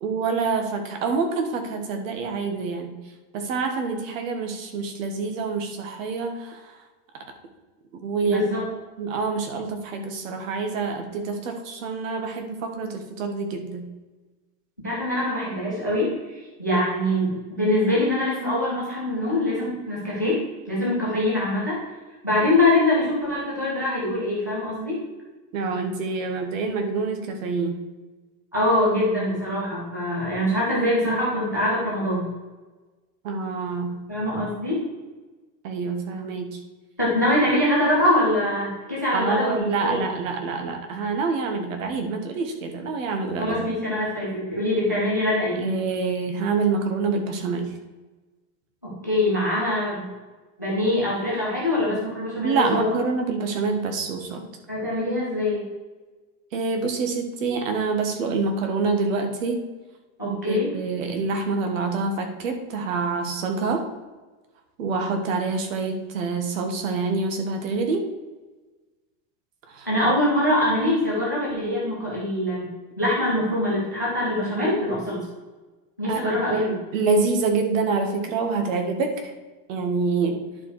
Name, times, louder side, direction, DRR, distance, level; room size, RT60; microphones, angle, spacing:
voice 1, 0.0-2.9 3.3-6.8 7.9-8.5 9.0-13.9 25.5-27.8 33.2-34.0 35.6-36.6 39.1-43.6 45.6-47.7 52.4-54.5 56.5-59.6 60.2-63.8 64.8-68.0 69.7-69.9 76.1-79.3 79.7-80.4, right 4 dB, 50° right, 5 dB, 1.6 m, -26 dB
voice 2, 8.3-8.6 14.8-20.4 20.7-21.8 22.2-25.0 28.5-32.3 34.1-34.8 37.0-40.0 43.4-45.6 48.8-50.1 50.6-52.9 54.7-55.6 60.2-60.7 69.9-72.7 73.0-75.2 76.0-76.8, left 1 dB, 15° left, -6 dB, 0.3 m, -23 dB
10.5 x 4.8 x 4.7 m, 1.2 s
supercardioid pair, 180°, 49 cm